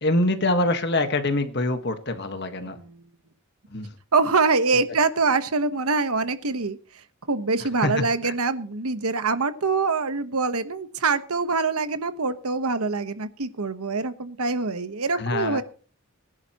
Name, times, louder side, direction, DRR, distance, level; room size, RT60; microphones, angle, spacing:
voice 1, 0.0-2.8 3.7-3.9 7.8-8.3 15.1-15.6, left 2 dB, 50° left, 8 dB, 1.6 m, -25 dB
voice 2, 2.6-3.0 4.1-15.6, right 4 dB, 80° right, 11 dB, 1.2 m, -25 dB
22.0 x 11.0 x 3.0 m, 0.39 s
head